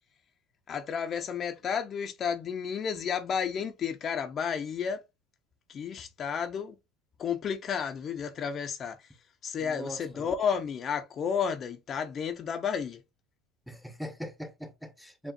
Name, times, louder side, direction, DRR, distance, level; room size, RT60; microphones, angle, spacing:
voice 1, 0.7-5.0 5.7-6.8 7.2-9.0 9.4-13.0, left 7 dB, 40° left, 0.7 m, -32 dB
voice 2, 9.6-10.3 13.7-15.3, equal, ahead, 0.9 m, -41 dB
7.3 x 2.5 x 2.4 m
supercardioid pair, 90°, 0 cm